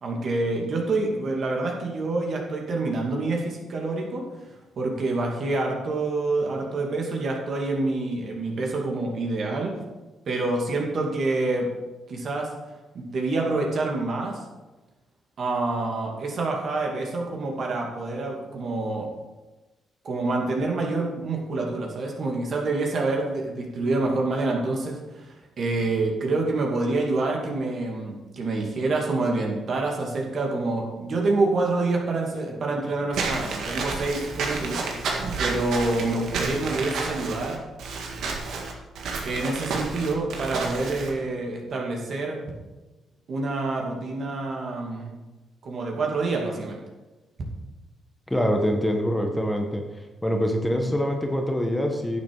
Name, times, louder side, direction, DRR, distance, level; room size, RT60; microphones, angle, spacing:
voice 1, 0.0-4.2 4.8-9.7 10.3-11.7 12.1-12.5 12.9-14.4 15.4-19.1 20.0-35.1 35.4-37.6 39.2-42.4 43.3-45.2 45.6-46.8, right 2 dB, 55° right, 0 dB, 2.5 m, -27 dB
Walk footsteps / Squeak, 33.1-41.1, right 4 dB, 75° right, 1.8 m, -30 dB
voice 2, 48.3-49.8 50.2-52.2, equal, 10° left, 3 dB, 1.4 m, -24 dB
11.0 x 7.0 x 5.0 m, 1.1 s
supercardioid pair, 65°, 0 cm